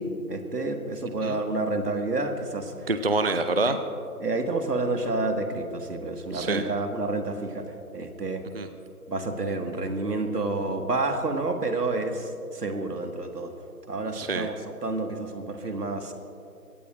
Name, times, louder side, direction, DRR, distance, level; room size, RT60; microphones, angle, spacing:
voice 1, 0.0-2.9 3.7-3.8 4.2-8.4 9.1-13.5 13.9-14.5 14.8-16.1, right 2 dB, 85° right, 5 dB, 1.9 m, -29 dB
voice 2, 2.9-3.8 6.3-6.6 8.5-8.7 14.1-14.5, right 3 dB, 40° right, 9 dB, 0.5 m, -26 dB
23.5 x 17.0 x 2.6 m, 2.6 s
figure-of-eight pair, 160°, 46 cm